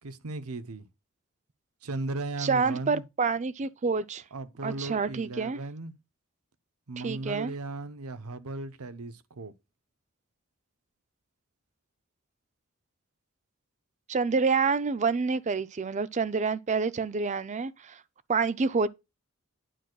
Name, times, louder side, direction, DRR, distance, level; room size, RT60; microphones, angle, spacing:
voice 1, 0.0-0.9 1.8-3.0 4.3-5.9 6.9-9.5, right 2 dB, 85° right, 0.9 m, -36 dB
voice 2, 2.4-4.2 4.6-5.6 7.0-7.5 14.1-18.0 18.3-18.9, right 4 dB, 35° right, 0.4 m, -27 dB
9.2 x 6.1 x 2.3 m
head